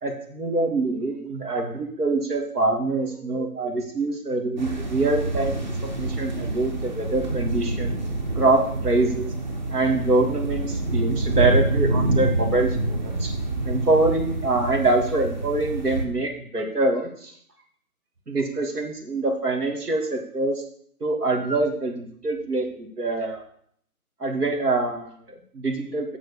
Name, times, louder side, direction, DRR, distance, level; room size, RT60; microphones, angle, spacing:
voice 1, 0.0-7.9 8.4-9.3 9.7-13.3 13.7-17.3 18.3-20.6 21.0-23.4 24.2-26.2, right 2 dB, 85° right, 3 dB, 2.5 m, -25 dB
sound 1, 4.6-16.1, right 2 dB, 30° right, 1.1 m, -26 dB
7.6 x 6.4 x 7.1 m, 0.63 s
hypercardioid pair, 170°, 45 cm